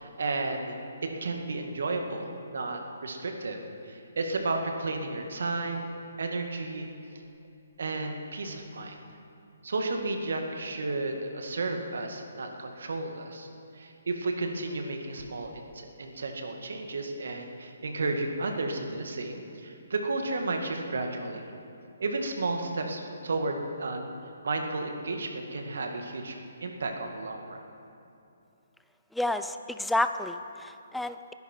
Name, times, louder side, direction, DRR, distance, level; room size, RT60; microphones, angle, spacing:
voice 1, 0.0-5.9 6.2-6.9 7.8-9.0 9.6-13.5 13.7-21.4 22.0-24.1 24.4-26.4 26.6-27.6, right 2 dB, 75° right, 4 dB, 1.9 m, -33 dB
voice 2, 29.1-31.3, left 1 dB, ahead, 9 dB, 0.4 m, -30 dB
20.5 x 10.5 x 4.6 m, 2.7 s
hypercardioid pair, 155°, 0 cm